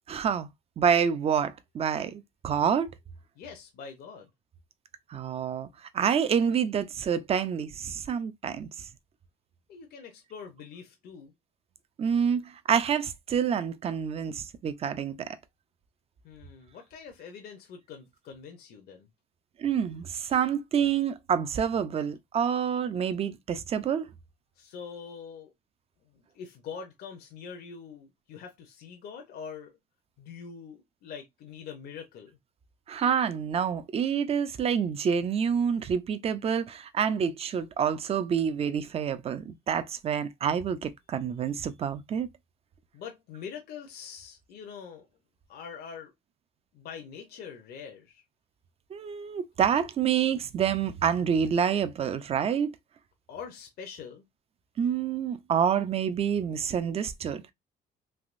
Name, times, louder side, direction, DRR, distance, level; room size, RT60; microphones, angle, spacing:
voice 1, 0.1-0.5 0.8-2.9 5.1-5.7 5.9-8.7 12.0-15.3 19.6-24.1 32.9-42.3 48.9-52.7 54.8-57.4, right 7 dB, 35° right, 0.5 m, -27 dB
voice 2, 3.4-4.3 9.7-11.3 16.2-19.1 24.5-25.5 26.0-29.7 30.2-32.3 42.9-45.1 45.5-46.1 46.7-48.2 53.3-54.2, left 6 dB, 65° left, 0.7 m, -44 dB
3.4 x 2.6 x 2.5 m
cardioid pair, 110°, 17 cm